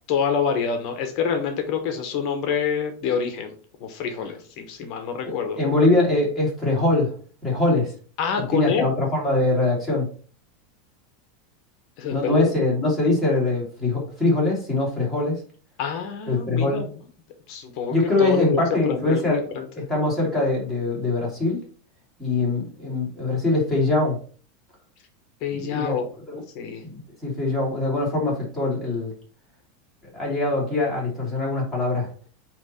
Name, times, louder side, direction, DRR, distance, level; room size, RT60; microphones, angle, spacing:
voice 1, 0.1-5.9 8.2-8.9 12.0-12.5 15.8-16.9 17.5-19.7 25.4-26.1 26.5-26.8, left 6 dB, 40° left, 6 dB, 1.0 m, -27 dB
voice 2, 5.6-7.1 7.4-7.9 8.5-10.1 12.1-15.4 16.3-16.8 17.9-19.5 19.9-21.6 22.2-24.2 25.5-25.9 26.3-26.4 26.8-29.1 30.1-32.1, left 2 dB, ahead, -6 dB, 2.5 m, -22 dB
8.7 x 3.1 x 4.3 m, 0.41 s
supercardioid pair, 170°, 0 cm